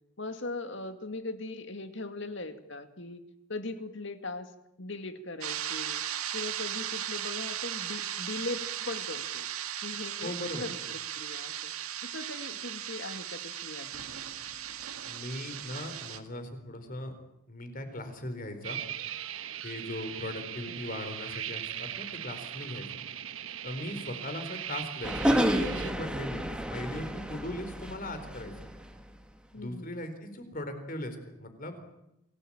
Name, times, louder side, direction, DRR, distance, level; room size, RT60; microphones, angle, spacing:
voice 1, 0.2-3.2 3.5-4.5 4.8-6.0 6.3-9.5 9.8-11.7 12.0-14.0 20.7-20.8 29.5-29.9, left 2 dB, 55° left, 9 dB, 2.3 m, -39 dB
sound 1, 5.4-16.2, right 10 dB, 85° right, 2.0 m, -37 dB
voice 2, 10.2-10.7 15.1-17.1 17.5-18.8 19.6-22.9 23.6-28.7 29.5-31.9, left 1 dB, 40° left, 8 dB, 4.3 m, -39 dB
sound 2, 18.6-25.9, right 10 dB, 70° right, 1.3 m, -39 dB
sound 3, 25.0-28.8, equal, 5° right, 1.7 m, -30 dB
28.0 x 18.5 x 8.9 m, 0.87 s
head